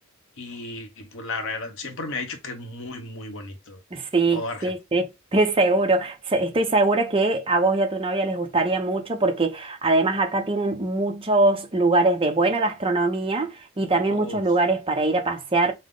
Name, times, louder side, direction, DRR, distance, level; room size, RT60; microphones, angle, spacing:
voice 1, 0.4-3.8 4.3-4.7 14.1-14.4, left 3 dB, 65° left, 1.0 m, -34 dB
voice 2, 3.9-15.7, right 2 dB, 25° right, 0.8 m, -22 dB
5.5 x 2.2 x 3.8 m
head